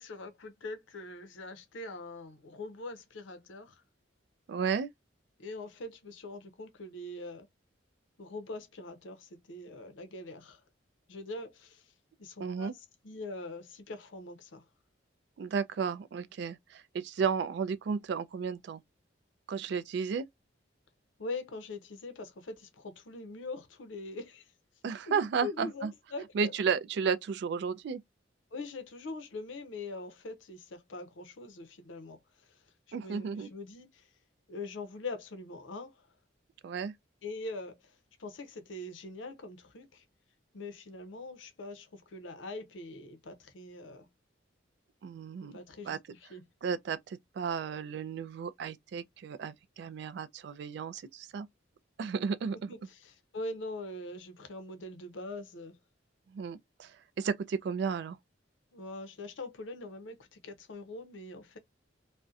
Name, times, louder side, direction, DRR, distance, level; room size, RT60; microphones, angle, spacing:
voice 1, 0.0-3.8 5.4-7.5 8.2-10.6 11.1-11.9 12.2-14.6 21.2-24.5 25.1-26.5 28.5-32.2 32.5-32.6 33.0-34.1 34.5-36.1 37.2-40.0 40.5-44.1 45.4-46.4 52.6-55.8 58.7-61.6, left 2 dB, 80° left, 0.6 m, -43 dB
voice 2, 4.5-4.9 12.4-12.7 15.4-18.8 19.5-20.2 24.8-25.9 26.3-28.0 32.9-33.5 36.6-36.9 45.0-45.6 45.8-46.0 46.6-51.5 52.0-52.7 56.3-58.2, right 6 dB, 60° right, 0.3 m, -33 dB
2.6 x 2.1 x 2.3 m
head